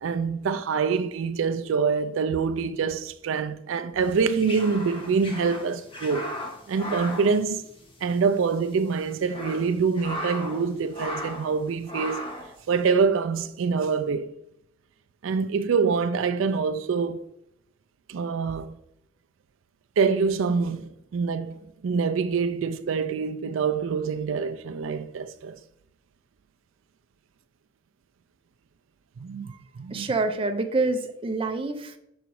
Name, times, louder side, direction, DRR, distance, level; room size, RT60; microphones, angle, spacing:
voice 1, 0.0-6.4 6.7-7.6 8.0-12.2 12.7-14.3 15.2-17.2 18.1-18.8 20.0-25.6 29.2-30.1, right 5 dB, 80° right, 0.4 m, -25 dB
sound 1, 4.1-8.2 8.4-8.6 9.1-10.6 10.9-11.5 11.9-12.5, left 1 dB, 25° left, 1.1 m, -36 dB
voice 2, 29.9-32.0, right 3 dB, 25° right, 0.5 m, -26 dB
6.0 x 4.0 x 4.6 m
head